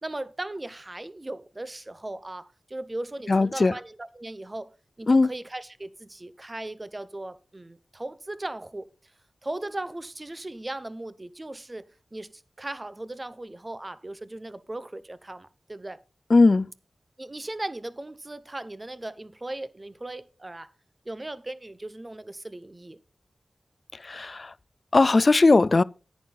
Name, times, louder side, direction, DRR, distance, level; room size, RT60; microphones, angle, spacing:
voice 1, 0.0-4.7 5.0-8.9 9.4-16.0 17.2-20.7 21.0-23.0, right 2 dB, 25° right, 0.8 m, -37 dB
voice 2, 3.3-3.7 5.1-5.3 16.3-16.7 24.0-24.5 24.9-25.8, left 3 dB, 45° left, 0.4 m, -19 dB
10.5 x 9.4 x 3.9 m
wide cardioid pair, 75°, 0 cm